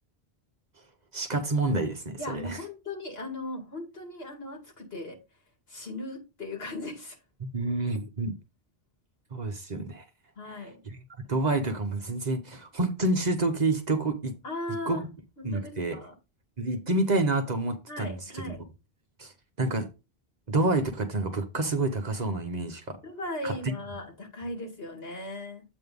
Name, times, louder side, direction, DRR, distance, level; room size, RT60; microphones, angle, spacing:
voice 1, 1.1-2.6 7.4-8.3 9.3-10.0 10.5-11.0 11.3-14.3 14.7-15.1 15.4-16.0 16.6-18.6 19.2-19.3 19.6-19.9 20.5-23.0 23.4-23.7, right 2 dB, 45° right, 1.1 m, -28 dB
voice 2, 2.2-5.2 5.7-7.2 10.4-10.7 14.4-15.0 15.4-16.1 17.9-18.6 23.0-25.6, left 2 dB, 70° left, 2.5 m, -38 dB
7.9 x 3.2 x 5.3 m
omnidirectional pair, 1.1 m